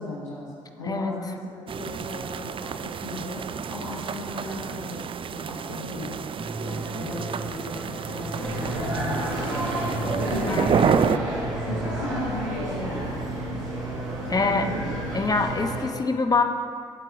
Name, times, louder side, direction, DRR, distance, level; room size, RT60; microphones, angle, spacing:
voice 1, 0.0-10.5 10.8-11.3 11.7-13.6 14.2-14.9, left 2 dB, 80° left, -5 dB, 1.3 m, -36 dB
sound 1, 1.7-11.2, right 7 dB, 35° right, 0.4 m, -29 dB
sound 2, 6.4-12.0, right 1 dB, 5° right, 1.5 m, -36 dB
sound 3, 8.3-15.9, right 1 dB, 85° right, 1.6 m, -30 dB
voice 2, 10.5-10.9 14.3-14.7 15.1-16.4, left 4 dB, 25° left, 5 dB, 1.1 m, -24 dB
22.0 x 8.1 x 2.8 m, 2.2 s
figure-of-eight pair, 40°, 16 cm